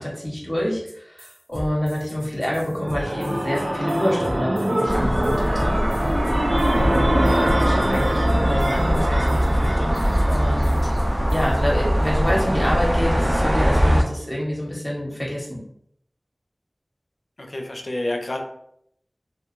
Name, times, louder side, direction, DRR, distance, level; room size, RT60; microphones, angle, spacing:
voice 1, 0.0-5.8 6.7-10.9 11.3-15.6, equal, 15° left, -4 dB, 0.7 m, -27 dB
sound 1, 0.9-1.0 1.2-11.5, equal, 45° right, 0.7 m, -37 dB
sound 2, 2.5-11.3, right 1 dB, 90° right, 0.5 m, -25 dB
sound 3, 4.9-14.0, equal, 25° right, 0.3 m, -21 dB
voice 2, 17.4-18.4, left 1 dB, 60° left, 4 dB, 0.4 m, -28 dB
2.2 x 2.2 x 3.0 m, 0.71 s
wide cardioid pair, 50°, 0 cm